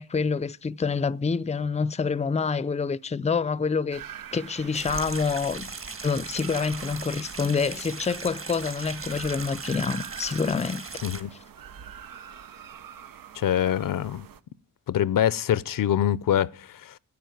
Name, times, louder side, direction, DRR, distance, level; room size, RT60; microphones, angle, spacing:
voice 1, 0.0-4.0 4.3-5.7 6.0-10.8, left 5 dB, 20° left, 0.5 m, -27 dB
sound 1, 3.9-14.4, right 8 dB, 90° right, 0.8 m, -44 dB
sound 2, 4.7-11.2, right 4 dB, 40° right, 1.7 m, -38 dB
voice 2, 13.3-14.3 14.9-17.0, left 10 dB, 75° left, 0.6 m, -25 dB
10.5 x 7.4 x 9.2 m
cardioid pair, 60°, 33 cm